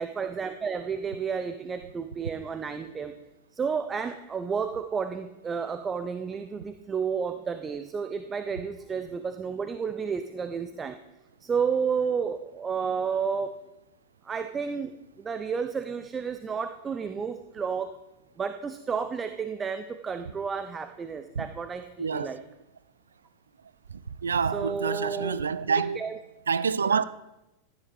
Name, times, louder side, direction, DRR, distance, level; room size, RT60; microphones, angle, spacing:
voice 1, 0.0-3.1 3.5-11.0 11.4-13.5 14.2-17.9 18.4-22.4 24.5-25.4 25.9-26.2 26.8-27.0, right 6 dB, 20° right, 0.6 m, -31 dB
voice 2, 22.0-22.3 24.2-26.0 26.5-27.0, right 6 dB, 70° right, 0.4 m, -27 dB
15.5 x 11.5 x 3.4 m
figure-of-eight pair, 90°, 0 cm